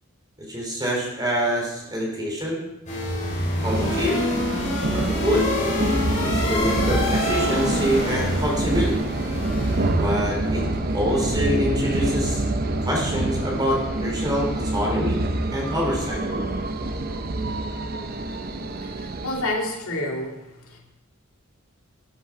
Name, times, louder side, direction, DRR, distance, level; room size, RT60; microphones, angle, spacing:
voice 1, 0.4-2.6 3.6-4.2 4.9-5.5 6.2-9.1 10.0-10.7 10.9-12.4 12.8-15.2 15.5-16.2, equal, 20° right, -1 dB, 3.2 m, -25 dB
sound 1, 2.9-10.7, left 2 dB, 35° left, 4.1 m, -27 dB
sound 2, 3.6-19.4, right 2 dB, 45° right, 0.8 m, -26 dB
voice 2, 18.3-20.8, left 1 dB, 90° left, 0 dB, 2.4 m, -30 dB
13.0 x 8.5 x 4.7 m, 0.94 s
head